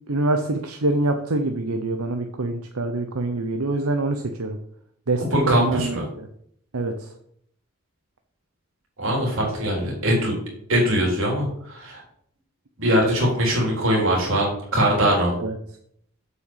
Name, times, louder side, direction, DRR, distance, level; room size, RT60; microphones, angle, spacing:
voice 1, 0.1-4.6 5.1-6.3 6.7-7.1 15.4-15.6, right 2 dB, 85° right, 5 dB, 0.9 m, -25 dB
voice 2, 5.3-6.0 9.0-10.4 10.7-12.0 12.8-15.4, equal, 65° right, -2 dB, 4.0 m, -21 dB
7.9 x 5.9 x 7.3 m, 0.69 s
head